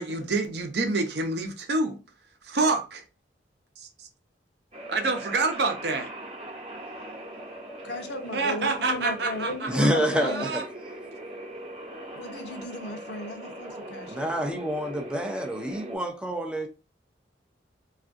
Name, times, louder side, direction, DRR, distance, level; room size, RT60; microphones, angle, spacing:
voice 1, 0.0-2.0 2.4-3.0 3.8-4.1 4.9-6.1 8.3-10.6, right 3 dB, 65° right, 0.6 m, -28 dB
sound 1, 4.7-16.0, right 1 dB, 35° right, 0.8 m, -41 dB
voice 2, 7.8-10.4 12.1-14.3, left 2 dB, 70° left, 0.7 m, -36 dB
voice 3, 9.7-10.7 14.1-16.7, equal, 5° right, 0.4 m, -27 dB
3.4 x 2.4 x 2.5 m
head